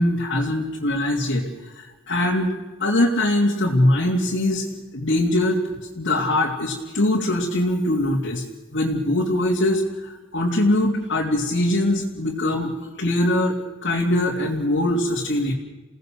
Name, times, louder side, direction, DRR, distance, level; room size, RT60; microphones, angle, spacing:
voice 1, 0.0-1.5 1.8-2.5 2.8-4.7 4.9-5.6 6.0-8.4 8.7-13.5 13.8-15.5, left 1 dB, 60° left, -3 dB, 2.9 m, -22 dB
29.0 x 17.5 x 6.5 m, 1.2 s
head